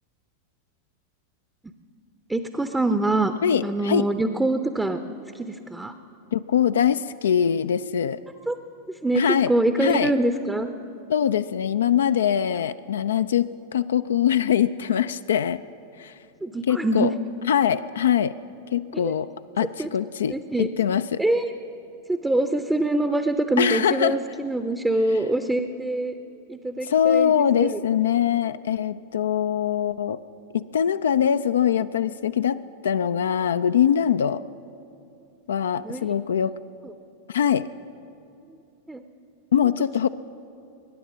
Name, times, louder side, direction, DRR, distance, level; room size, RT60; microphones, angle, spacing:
voice 1, 2.3-3.3 3.6-5.0 5.3-5.9 8.5-8.6 9.0-10.7 16.4-17.1 18.9-19.1 19.8-19.9 20.3-20.7 21.2-21.5 22.1-26.1 26.5-27.8 35.8-36.1 36.8-36.9 38.9-39.0, right 2 dB, 5° right, 8 dB, 0.6 m, -24 dB
voice 2, 3.4-4.1 6.3-8.2 9.2-9.5 9.8-10.1 11.1-13.5 13.7-15.6 16.0-16.1 16.7-17.1 17.5-18.3 18.7-19.3 19.6-21.2 23.6-24.2 26.8-30.2 30.5-34.4 35.5-36.5 37.3-37.7 39.5-40.1, left 9 dB, 65° left, 12 dB, 0.3 m, -22 dB
21.5 x 10.0 x 6.3 m, 2.7 s
figure-of-eight pair, 90°, 0 cm